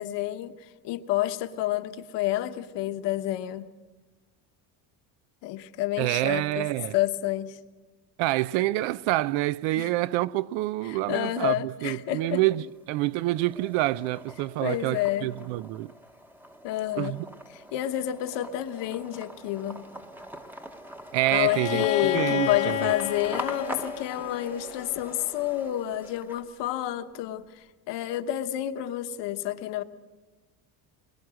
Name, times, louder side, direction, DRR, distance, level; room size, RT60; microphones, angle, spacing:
voice 1, 0.0-3.7 5.4-6.7 6.9-7.6 9.8-9.9 10.8-12.4 14.6-15.3 16.6-17.2 17.5-19.8 21.3-29.8, left 13 dB, 60° left, 1.2 m, -29 dB
voice 2, 6.0-6.9 8.2-15.9 17.0-17.2 21.1-21.9 22.1-22.9, right 17 dB, 70° right, 0.6 m, -27 dB
sound 1, 12.1-12.8 13.2-26.7, equal, 5° right, 1.0 m, -43 dB
Bowed string instrument, 21.5-25.2, left 12 dB, 40° left, 1.0 m, -31 dB
22.5 x 21.0 x 6.3 m
cardioid pair, 150°, 47 cm